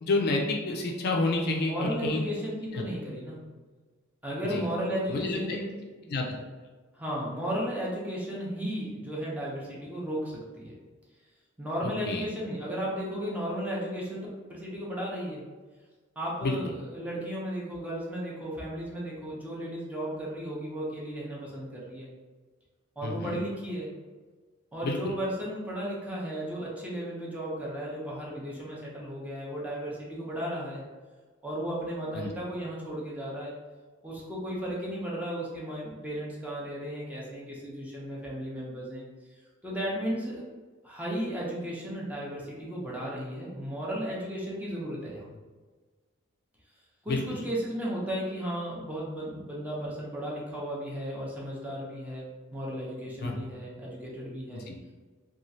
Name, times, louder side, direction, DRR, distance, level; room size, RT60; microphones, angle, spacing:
voice 1, 0.0-2.2 2.7-2.8 4.5-4.7 5.1-5.6 6.1-6.4 11.8-12.2 16.4-16.7 23.0-23.4 24.8-25.1 32.1-32.3 47.1-47.4 53.2-53.3 54.5-54.8, left 2 dB, 50° left, 1 dB, 0.4 m, -29 dB
voice 2, 1.5-3.4 4.2-6.1 6.9-10.8 11.6-15.5 16.2-22.1 23.0-23.9 24.7-30.8 31.4-33.5 34.0-39.0 39.6-40.4 40.8-45.3 47.0-52.3 52.5-54.7, equal, 5° right, -5 dB, 0.6 m, -34 dB
3.0 x 2.3 x 2.6 m, 1.4 s
head